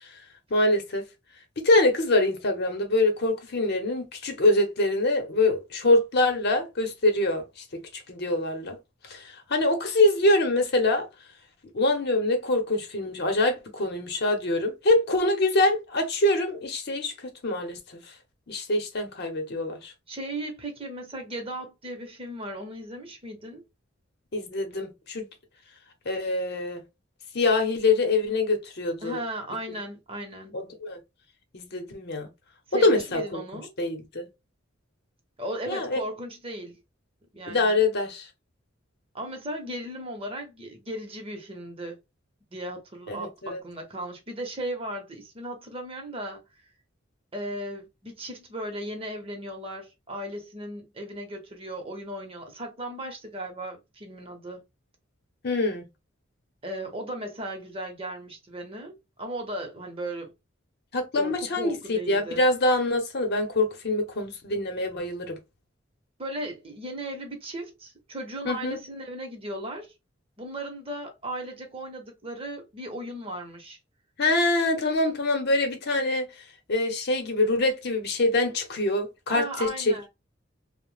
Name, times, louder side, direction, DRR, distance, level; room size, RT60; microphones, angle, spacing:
voice 1, 0.5-1.0 1.6-7.4 7.7-8.8 9.1-11.1 11.7-18.0 18.5-19.9 24.3-25.3 26.1-26.8 27.3-29.2 30.5-31.0 31.5-32.3 32.7-33.4 33.8-34.3 35.7-36.0 37.5-38.3 43.1-43.6 55.4-55.8 60.9-65.4 68.4-68.8 74.2-76.3 76.7-80.1, left 2 dB, 55° left, 0.8 m, -24 dB
voice 2, 20.1-23.6 29.0-30.7 32.7-33.7 35.4-36.8 37.3-37.8 39.1-42.0 42.5-46.4 47.3-54.6 56.6-60.3 61.1-62.5 66.2-69.9 70.4-73.8 79.3-80.1, right 1 dB, 30° right, 0.8 m, -36 dB
2.8 x 2.1 x 3.2 m
head